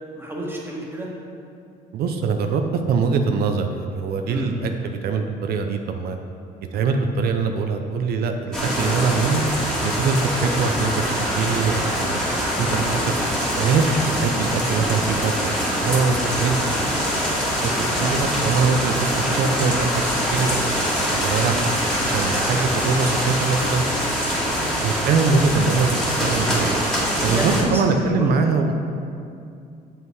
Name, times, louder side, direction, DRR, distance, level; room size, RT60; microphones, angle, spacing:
voice 1, 0.1-1.1 4.3-4.5 12.2-12.7 18.4-18.7 27.2-28.3, equal, 15° right, -3 dB, 1.5 m, -31 dB
voice 2, 1.9-6.2 6.7-9.4 9.8-12.2 12.6-12.9 13.6-15.3 15.8-16.8 17.5-17.7 18.0-21.6 22.0-23.8 24.8-26.8 27.2-28.7, right 4 dB, 65° right, 5 dB, 0.6 m, -23 dB
sound 1, 8.5-27.6, equal, 5° left, 1.8 m, -24 dB
7.5 x 5.6 x 4.8 m, 2.5 s
cardioid pair, 110°, 17 cm